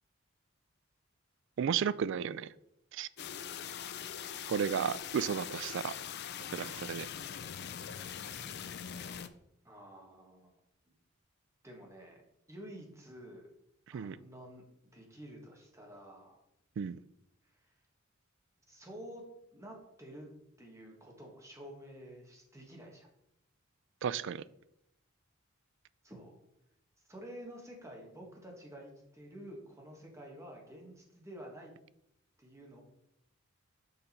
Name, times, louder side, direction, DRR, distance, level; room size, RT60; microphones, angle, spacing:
voice 1, 1.6-2.5 2.9-3.1 4.5-5.9 6.5-7.1 13.9-14.2 16.8-17.0 24.0-24.4, right 7 dB, 60° right, 18 dB, 0.3 m, -33 dB
sound 1, 3.2-9.3, left 9 dB, 50° left, 0.4 m, -42 dB
voice 2, 9.6-10.5 10.9-11.0 11.6-12.2 12.5-13.5 13.9-16.4 17.4-17.7 18.7-19.2 19.5-23.1 26.0-26.4 27.1-31.7 32.4-32.8, equal, 15° right, 0 dB, 1.6 m, -50 dB
6.8 x 5.2 x 4.3 m, 0.80 s
head